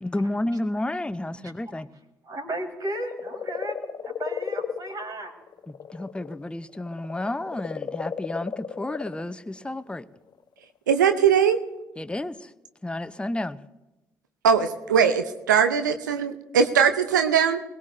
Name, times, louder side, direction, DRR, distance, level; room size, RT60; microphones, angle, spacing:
voice 1, 0.0-1.9 5.7-10.1 12.0-12.5 12.8-13.6, left 1 dB, 10° left, 12 dB, 0.7 m, -31 dB
voice 2, 2.2-5.3, right 1 dB, 40° right, 1 dB, 4.3 m, -34 dB
sound 1, 2.9-6.4 6.7-9.3 10.3-10.4, left 7 dB, 45° left, 1.1 m, -34 dB
voice 3, 10.9-11.6 14.4-17.6, right 7 dB, 85° right, 8 dB, 0.6 m, -20 dB
22.0 x 18.0 x 2.7 m, 1.0 s
figure-of-eight pair, 45°, 10 cm